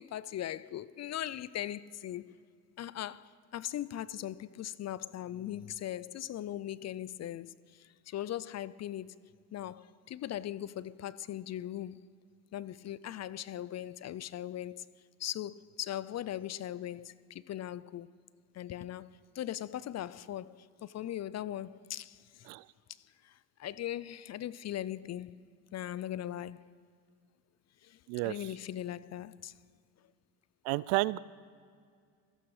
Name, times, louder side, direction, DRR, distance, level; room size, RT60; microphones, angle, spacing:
voice 1, 0.0-2.3 2.8-9.1 9.5-12.0 12.5-14.9 15.2-18.1 18.5-19.1 19.3-22.5 23.2-23.3 23.6-25.3 25.7-26.6 27.8-29.5, left 12 dB, 35° left, 0.4 m, -39 dB
voice 2, 30.7-31.2, right 21 dB, 70° right, 0.5 m, -30 dB
25.5 x 8.9 x 4.9 m
hypercardioid pair, 75°, 47 cm